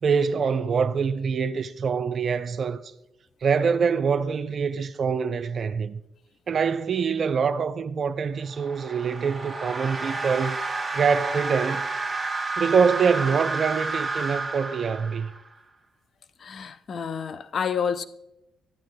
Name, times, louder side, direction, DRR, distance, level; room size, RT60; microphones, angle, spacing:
voice 1, 0.0-2.9 3.4-6.0 6.5-10.6 10.9-11.9 12.6-15.3, right 6 dB, 55° right, 0.4 m, -24 dB
sound 1, 8.5-15.5, right 3 dB, 25° right, 1.1 m, -30 dB
voice 2, 16.4-18.0, left 7 dB, 55° left, 0.4 m, -29 dB
11.5 x 9.0 x 2.2 m
supercardioid pair, 55°, 0 cm